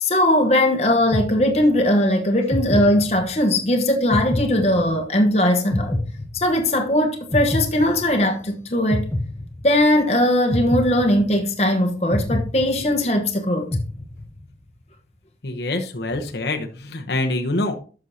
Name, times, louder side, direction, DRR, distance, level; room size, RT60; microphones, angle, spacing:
voice 1, 0.0-5.9 6.3-9.1 9.6-13.7, left 1 dB, 35° left, 1.1 m, -19 dB
sound 1, 1.1-2.0 2.5-3.6 4.1-5.3 5.7-6.9 7.3-8.5 8.9-10.0 10.5-11.7 12.1-13.3 13.7-14.6, left 1 dB, 15° left, 0.7 m, -27 dB
voice 2, 15.4-17.8, left 2 dB, 70° left, 1.0 m, -25 dB
11.5 x 6.3 x 2.8 m
head